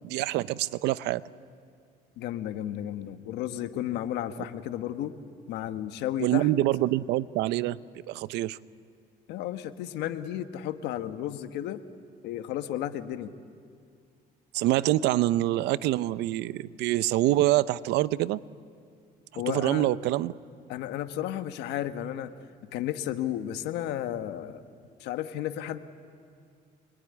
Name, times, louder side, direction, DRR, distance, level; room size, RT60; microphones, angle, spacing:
voice 1, 0.0-1.2 6.2-8.6 14.5-18.4 19.5-20.3, right 15 dB, 85° right, 17 dB, 0.7 m, -26 dB
voice 2, 2.2-5.2 5.5-6.5 9.3-11.8 12.2-13.3 19.3-19.9 20.7-22.3 22.7-24.6 25.0-25.8, left 11 dB, 85° left, 9 dB, 1.3 m, -33 dB
26.5 x 22.0 x 9.7 m, 2.2 s
cardioid pair, 110°, 17 cm